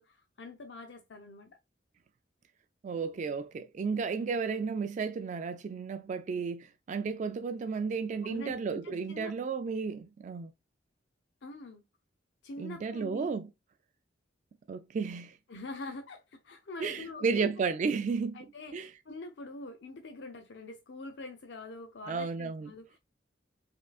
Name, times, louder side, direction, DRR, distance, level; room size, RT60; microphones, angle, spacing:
voice 1, 0.0-1.6 8.2-8.6 8.8-9.4 11.4-11.8 12.4-13.3 15.5-17.7 18.3-23.0, left 2 dB, 65° left, 0.6 m, -44 dB
voice 2, 2.8-10.5 12.6-13.5 14.7-15.4 16.8-18.9 22.1-22.7, right 5 dB, 40° right, 0.3 m, -33 dB
4.9 x 3.6 x 2.3 m
head